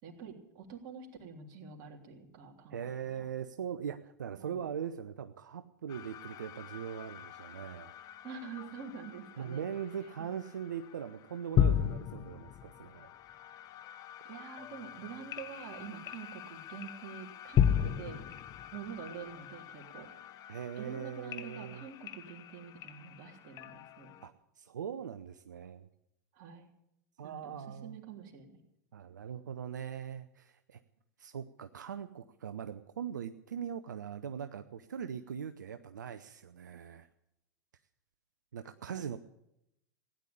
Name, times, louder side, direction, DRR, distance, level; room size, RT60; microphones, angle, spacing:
voice 1, 0.0-3.2 4.4-4.7 8.2-9.7 10.2-10.3 14.2-18.2 18.7-20.1 20.8-24.1 26.3-26.7 27.2-28.6 38.9-39.2, right 6 dB, 45° right, 1 dB, 3.4 m, -46 dB
voice 2, 2.7-7.9 9.4-13.1 20.5-21.8 24.2-25.9 27.2-28.0 28.9-30.8 31.2-37.1 38.5-39.2, right 8 dB, 80° right, 10 dB, 0.7 m, -41 dB
sound 1, 5.9-24.3, left 9 dB, 40° left, 1.0 m, -37 dB
16.5 x 10.0 x 8.5 m, 0.82 s
hypercardioid pair, 95°, 10 cm